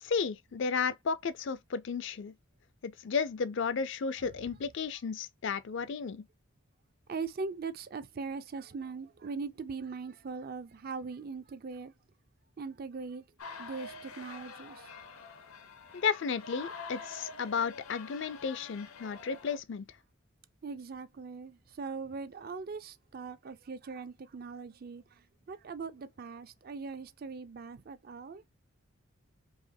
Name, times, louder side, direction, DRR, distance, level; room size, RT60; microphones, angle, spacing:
voice 1, 0.0-2.3 2.8-6.2 15.9-19.9, left 5 dB, 55° left, 0.4 m, -33 dB
voice 2, 7.1-11.9 12.6-13.2 13.6-14.9 20.6-25.0 25.5-28.4, right 4 dB, 45° right, 0.4 m, -40 dB
sound 1, 13.4-19.6, left 4 dB, 90° left, 0.9 m, -46 dB
4.8 x 2.8 x 2.6 m
head